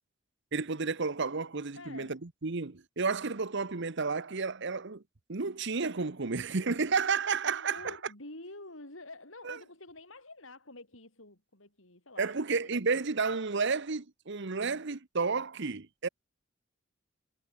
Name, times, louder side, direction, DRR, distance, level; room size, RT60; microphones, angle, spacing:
voice 1, 0.5-5.0 5.3-8.0 9.4-9.6 12.2-16.1, right 4 dB, 65° right, 1.1 m, -31 dB
voice 2, 1.8-2.2 7.5-13.0, left 2 dB, 75° left, 7.8 m, -49 dB
head